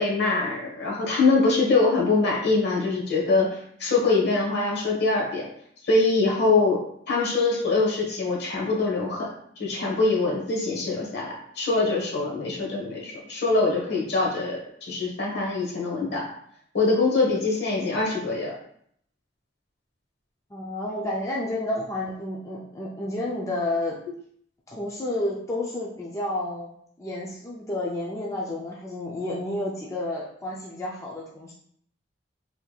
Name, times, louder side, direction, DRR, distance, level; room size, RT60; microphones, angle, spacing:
voice 1, 0.0-5.5 5.8-6.8 7.1-9.3 9.6-14.6 14.9-16.2 16.7-18.5, left 3 dB, 65° left, -3 dB, 1.1 m, -23 dB
voice 2, 20.5-24.0 24.7-26.7 27.0-31.5, left 1 dB, 15° left, -5 dB, 0.4 m, -30 dB
3.3 x 3.2 x 2.3 m, 0.67 s
head